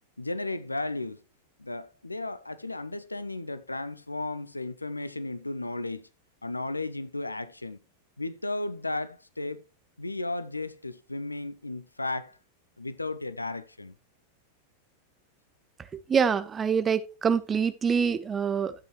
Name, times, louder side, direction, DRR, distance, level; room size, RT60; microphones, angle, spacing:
voice 1, 0.2-1.2 1.6-6.1 6.4-7.8 8.2-9.6 10.0-12.4 12.8-13.9, left 2 dB, 85° left, 0.8 m, -34 dB
voice 2, 16.1-18.7, right 6 dB, 20° right, 0.9 m, -25 dB
12.0 x 8.0 x 3.1 m
figure-of-eight pair, 90°, 0 cm